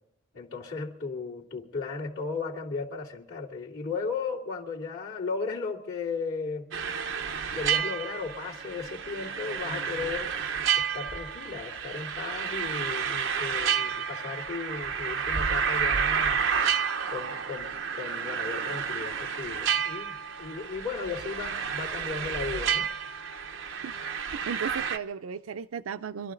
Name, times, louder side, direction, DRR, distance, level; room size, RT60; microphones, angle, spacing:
voice 1, 0.3-6.8 7.5-10.3 10.8-16.5 17.1-23.0, left 4 dB, 90° left, 2.6 m, -35 dB
sound 1, 6.7-25.0, right 7 dB, 65° right, 0.8 m, -30 dB
voice 2, 23.8-26.3, right 6 dB, 90° right, 0.5 m, -36 dB
25.0 x 12.5 x 3.8 m
head